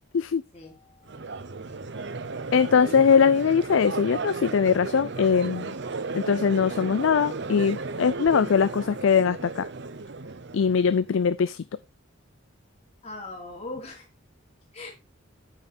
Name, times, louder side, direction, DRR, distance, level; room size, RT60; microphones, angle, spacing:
voice 1, 0.5-1.2 13.0-14.0 14.7-14.9, left 2 dB, 30° left, 3.1 m, -40 dB
Crowd, 1.1-11.2, right 3 dB, 55° right, 0.7 m, -35 dB
voice 2, 2.5-5.8 6.1-9.7 10.5-11.6, left 6 dB, 70° left, 0.4 m, -21 dB
8.9 x 5.9 x 4.2 m
head